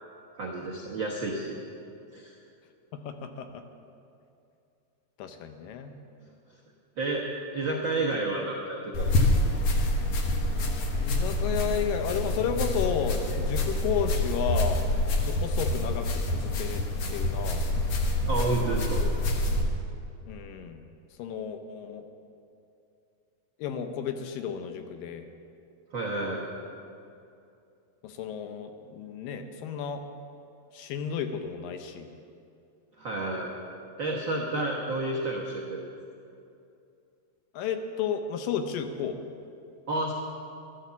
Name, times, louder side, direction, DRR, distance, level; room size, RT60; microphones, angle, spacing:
voice 1, 0.4-1.5 2.1-2.3 7.0-7.2 7.5-9.3 18.2-19.0 25.9-26.5 33.0-33.5 34.0-35.8 39.9-40.1, right 2 dB, 80° right, -2 dB, 1.0 m, -30 dB
voice 2, 2.9-3.6 5.2-6.0 11.0-14.9 15.2-17.7 20.2-20.8 21.2-22.1 23.6-25.3 28.0-30.0 30.7-32.1 37.5-39.2, left 7 dB, 75° left, 7 dB, 2.3 m, -32 dB
sound 1, 8.9-19.6, left 1 dB, 60° left, 2.0 m, -27 dB
13.0 x 12.0 x 7.0 m, 2.6 s
omnidirectional pair, 4.3 m